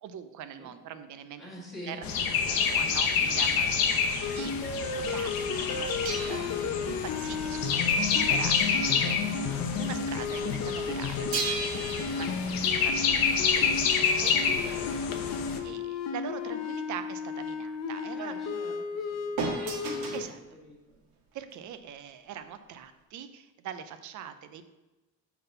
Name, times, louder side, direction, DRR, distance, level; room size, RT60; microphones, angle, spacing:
voice 1, 0.0-2.1 2.7-3.8 4.1-6.5 6.9-9.4 9.7-11.9 12.2-13.9 14.2-14.6 15.6-18.3 20.1-20.4 21.3-24.6, right 9 dB, 55° right, 10 dB, 0.5 m, -42 dB
voice 2, 1.4-2.7 6.1-6.5 9.3-9.8 12.1-12.3 14.6-15.0 18.1-19.9 20.5-21.1, left 1 dB, ahead, -6 dB, 1.6 m, -47 dB
sound 1, 2.0-15.6, left 6 dB, 70° left, 0.9 m, -28 dB
sound 2, 4.2-20.2, left 5 dB, 45° left, 0.6 m, -33 dB
sound 3, 6.1-9.2 9.5-9.7 11.3-14.1 19.4-20.4 21.3-21.4, right 4 dB, 75° right, 1.6 m, -37 dB
7.2 x 4.0 x 5.4 m, 1.1 s
cardioid pair, 170°, 36 cm